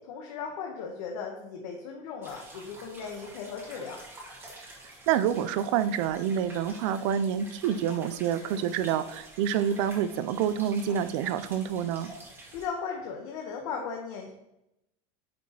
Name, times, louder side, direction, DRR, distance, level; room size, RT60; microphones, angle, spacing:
voice 1, 0.0-4.0 12.5-14.3, left 6 dB, 80° left, 1 dB, 1.1 m, -37 dB
sound 1, 2.2-12.7, right 1 dB, 15° right, 1.1 m, -48 dB
voice 2, 5.1-12.1, right 9 dB, 60° right, 13 dB, 0.5 m, -27 dB
9.3 x 4.7 x 2.9 m, 0.85 s
cardioid pair, 180°, 17 cm